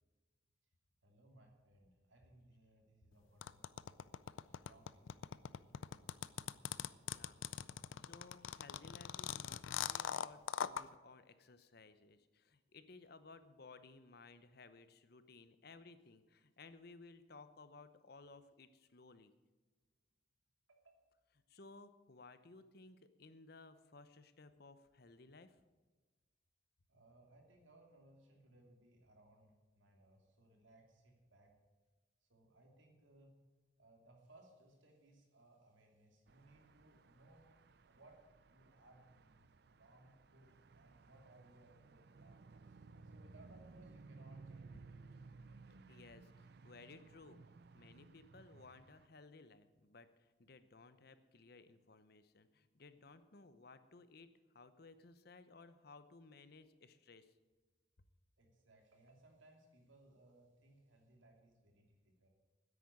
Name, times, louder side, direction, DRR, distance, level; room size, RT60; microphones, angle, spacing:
voice 1, 1.0-3.9 4.6-5.0 20.7-21.0 26.9-31.5 32.3-33.3 33.8-37.6 37.9-38.2 38.5-39.5 39.8-42.4 42.7-42.8 43.1-45.2 58.4-62.3, right 1 dB, 80° right, 1 dB, 2.9 m, -65 dB
sound 1, 3.4-10.8, left 8 dB, 85° left, 0.5 m, -41 dB
voice 2, 7.1-7.4 8.0-19.3 21.5-25.6 45.9-47.4 47.7-57.3, left 3 dB, 55° left, 12 dB, 0.8 m, -59 dB
sound 2, 36.3-49.1, right 3 dB, 55° right, 0.5 m, -59 dB
10.0 x 8.7 x 9.7 m, 1.3 s
head